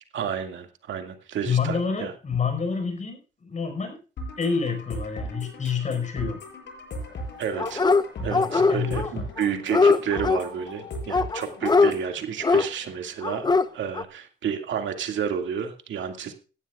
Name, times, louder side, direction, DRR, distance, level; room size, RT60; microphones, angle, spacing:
voice 1, 0.1-2.1 7.4-7.8 8.2-16.3, right 8 dB, 70° right, 5 dB, 2.2 m, -31 dB
voice 2, 1.4-4.0 4.4-6.4 8.2-9.2, left 5 dB, 35° left, 7 dB, 5.0 m, -28 dB
sound 1, 4.2-12.2, equal, 65° left, 6.8 m, -38 dB
Dog, 7.6-8.0 8.3-9.1 9.4-10.4 11.1-11.9 12.4-12.7 13.2-13.6 13.9-14.0, left 4 dB, 20° left, 0.8 m, -21 dB
17.0 x 12.5 x 2.4 m, 0.34 s
cardioid pair, 90°, 20 cm